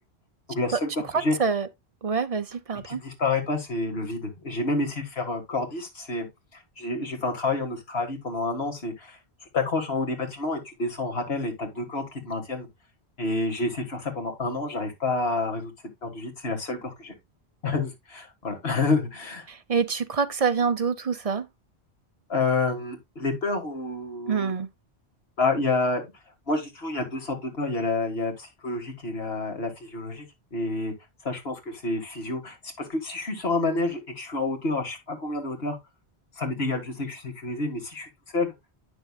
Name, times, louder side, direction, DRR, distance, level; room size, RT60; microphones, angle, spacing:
voice 1, 0.5-1.4 2.8-6.3 6.5-9.2 9.5-12.7 13.2-15.7 16.0-17.1 17.6-19.5 22.3-24.5 25.4-26.0 26.5-30.2 30.5-30.9 31.2-35.8 36.4-38.5, left 3 dB, 65° left, 2.0 m, -29 dB
voice 2, 1.1-1.7 2.0-3.0 19.5-21.5 24.3-24.7, right 5 dB, 40° right, 0.6 m, -26 dB
9.0 x 6.2 x 2.3 m
omnidirectional pair, 1.1 m